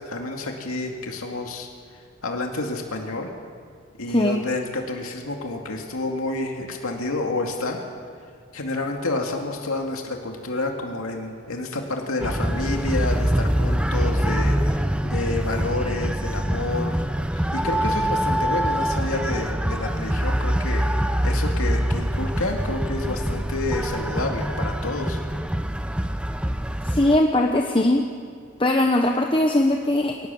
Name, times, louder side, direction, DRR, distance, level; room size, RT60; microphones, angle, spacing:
voice 1, 0.1-1.7 2.2-3.3 4.0-7.9 8.5-17.0 17.3-20.9 21.2-25.2, left 2 dB, 90° left, 2 dB, 2.4 m, -29 dB
voice 2, 4.1-4.4 26.8-28.1 28.6-30.3, left 1 dB, 25° left, 3 dB, 0.9 m, -20 dB
sound 1, 12.2-27.2, equal, 5° right, 0.6 m, -24 dB
23.0 x 18.5 x 7.1 m, 2.1 s
head